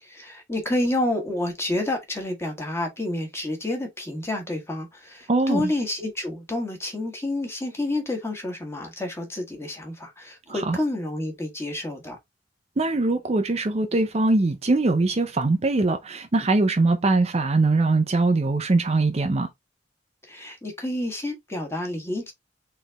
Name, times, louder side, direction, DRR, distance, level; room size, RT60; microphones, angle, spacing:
voice 1, 0.0-12.2 20.3-22.3, left 1 dB, 15° left, 1.4 m, -29 dB
voice 2, 5.3-5.7 10.5-10.8 12.8-19.5, right 2 dB, 35° right, 0.5 m, -22 dB
4.0 x 3.3 x 3.4 m
head